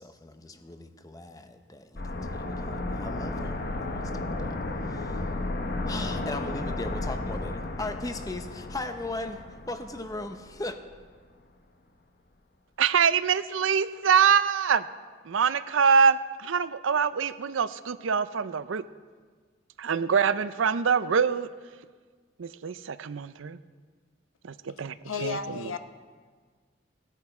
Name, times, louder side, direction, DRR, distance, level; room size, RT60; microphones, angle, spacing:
voice 1, 0.0-4.6 4.8-5.3 5.8-10.8, left 2 dB, 20° left, 8 dB, 0.7 m, -38 dB
sound 1, 2.0-10.7 10.9-11.0, left 2 dB, 50° left, 1.0 m, -33 dB
voice 2, 12.8-14.9 15.2-18.8 19.8-21.5 22.4-23.6 24.4-25.0 25.2-25.7, right 6 dB, 80° right, 14 dB, 0.5 m, -24 dB
voice 3, 25.0-25.8, left 5 dB, 90° left, 9 dB, 0.8 m, -32 dB
18.0 x 10.5 x 4.4 m, 1.5 s
head